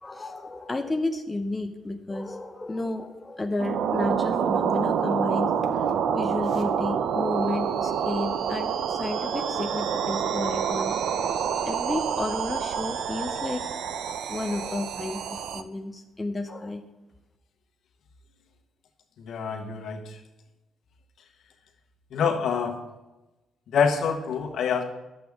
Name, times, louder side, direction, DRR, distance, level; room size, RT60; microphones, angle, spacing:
voice 1, 0.0-13.7 14.3-16.8, left 2 dB, 20° left, 5 dB, 0.7 m, -32 dB
sound 1, 3.6-15.6, right 7 dB, 75° right, 0.6 m, -27 dB
voice 2, 19.2-20.2 22.1-22.8 23.7-24.8, left 6 dB, 65° left, 3 dB, 1.4 m, -26 dB
11.0 x 7.8 x 3.6 m, 1.0 s
cardioid pair, 90°, 0 cm